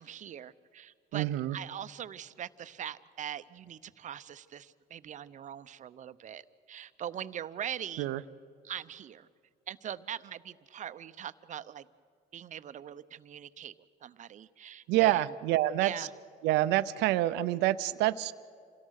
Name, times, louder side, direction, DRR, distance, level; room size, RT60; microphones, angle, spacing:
voice 1, 0.0-8.1 8.6-9.3 9.7-11.9 12.3-13.7 14.0-15.3 15.8-16.1, right 10 dB, 45° right, 13 dB, 0.8 m, -42 dB
voice 2, 1.1-1.6 8.0-8.2 14.9-16.1 16.4-18.3, right 15 dB, 90° right, 13 dB, 0.7 m, -27 dB
27.5 x 17.5 x 6.5 m, 2.3 s
cardioid pair, 110°, 17 cm